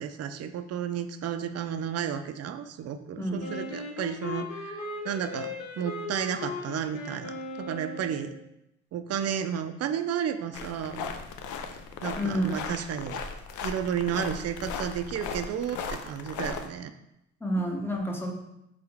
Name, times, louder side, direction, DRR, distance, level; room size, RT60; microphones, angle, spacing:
voice 1, 0.0-8.4 8.9-11.1 12.0-13.2 13.6-16.9, right 8 dB, 55° right, 10 dB, 0.4 m, -32 dB
voice 2, 3.2-3.6 12.2-12.5 17.4-18.3, equal, 5° left, 0 dB, 0.7 m, -29 dB
Wind instrument woodwind instrument, 3.4-8.4, left 2 dB, 60° left, 0.8 m, -38 dB
sound 1, 10.5-16.7, left 5 dB, 80° left, 0.5 m, -37 dB
3.7 x 3.4 x 3.4 m, 0.85 s
cardioid pair, 90°, 30 cm